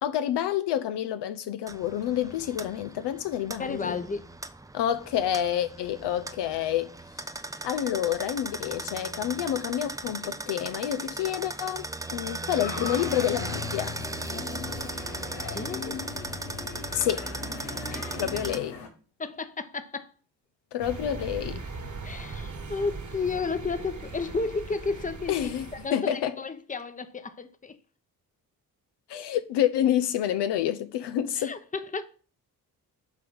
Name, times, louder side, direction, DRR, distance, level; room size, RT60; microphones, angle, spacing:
voice 1, 0.0-4.0 4.7-6.9 7.6-11.8 12.1-14.0 16.9-17.3 18.1-18.8 20.7-21.6 25.3-25.6 25.9-26.3 29.1-31.5, left 11 dB, 60° left, 0.7 m, -28 dB
sound 1, 1.7-18.6, right 2 dB, 10° right, 0.5 m, -37 dB
voice 2, 3.6-4.3 15.5-16.0 17.8-18.2 19.2-20.1 22.0-27.8 31.4-32.0, left 4 dB, 15° left, 0.9 m, -33 dB
sound 2, 12.6-18.9, left 6 dB, 85° left, 1.1 m, -38 dB
sound 3, 20.8-25.9, right 4 dB, 40° right, 1.4 m, -39 dB
7.5 x 3.5 x 5.4 m
hypercardioid pair, 40°, 46 cm